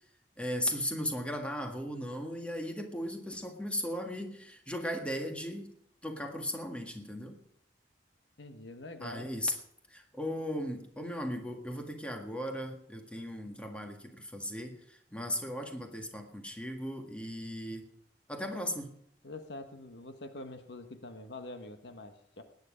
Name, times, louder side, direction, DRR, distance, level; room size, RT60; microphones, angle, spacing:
voice 1, 0.4-5.7 6.0-7.4 9.0-9.5 9.9-17.9 18.3-18.9, equal, 5° left, 3 dB, 1.7 m, -37 dB
voice 2, 8.4-9.3 19.2-22.4, left 2 dB, 75° left, 8 dB, 1.3 m, -45 dB
19.0 x 9.6 x 5.1 m, 0.71 s
head